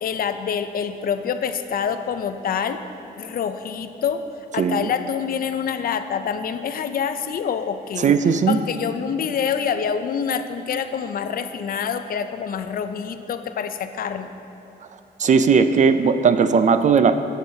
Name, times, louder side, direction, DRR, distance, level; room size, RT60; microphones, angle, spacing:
voice 1, 0.0-2.8 3.2-4.2 4.5-8.1 8.5-14.3, left 7 dB, 55° left, 10 dB, 0.5 m, -26 dB
voice 2, 4.6-4.9 8.0-8.6 15.2-17.2, right 5 dB, 45° right, 10 dB, 0.4 m, -17 dB
14.0 x 7.3 x 2.8 m, 2.9 s
cardioid pair, 105°, 18 cm